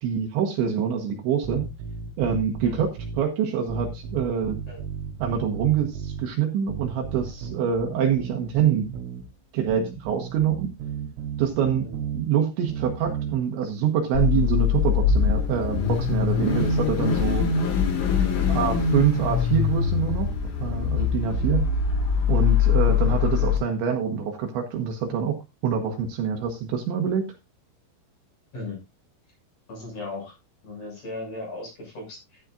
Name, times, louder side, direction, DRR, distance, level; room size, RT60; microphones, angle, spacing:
voice 1, 0.0-1.7 2.2-2.9 3.2-4.6 5.2-8.9 9.5-10.7 11.4-11.9 12.1-17.5 18.5-20.3 20.6-21.7 22.3-25.4 25.6-27.3, right 8 dB, 70° right, 3 dB, 3.3 m, -25 dB
sound 1, 1.4-3.2 3.7-6.3 6.7-9.3 9.7-12.2 12.7-13.3, right 6 dB, 90° right, 4.4 m, -34 dB
Car / Idling / Accelerating revving vroom, 14.1-23.6, left 6 dB, 50° left, 2.7 m, -23 dB
voice 2, 29.7-30.3 30.6-32.4, left 2 dB, 30° left, -1 dB, 7.9 m, -37 dB
13.0 x 11.0 x 2.5 m, 0.24 s
omnidirectional pair, 5.9 m